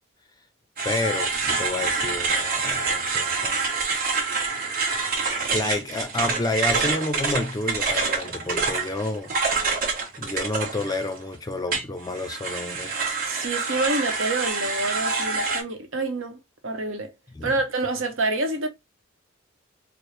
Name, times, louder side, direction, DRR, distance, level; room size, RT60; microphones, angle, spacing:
voice 1, 0.8-3.6 5.5-9.3 10.2-13.2 17.4-17.5, left 2 dB, 20° left, 0.4 m, -30 dB
sound 1, 0.8-11.2 11.7-15.6, right 4 dB, 45° right, 1.2 m, -26 dB
voice 2, 13.3-17.1 17.4-18.7, right 2 dB, 75° right, 0.9 m, -27 dB
4.3 x 2.0 x 3.2 m
head